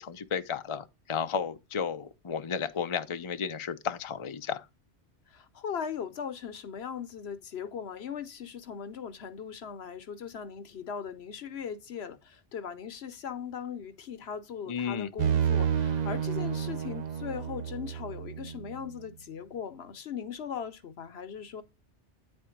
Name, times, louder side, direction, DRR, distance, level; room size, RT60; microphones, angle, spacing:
voice 1, 0.0-4.6 14.7-15.1, left 7 dB, 30° left, 0.7 m, -33 dB
voice 2, 5.3-21.6, left 7 dB, 65° left, 1.0 m, -39 dB
sound 1, 15.2-18.9, right 8 dB, 45° right, 0.6 m, -30 dB
9.4 x 4.4 x 5.0 m
omnidirectional pair, 1.2 m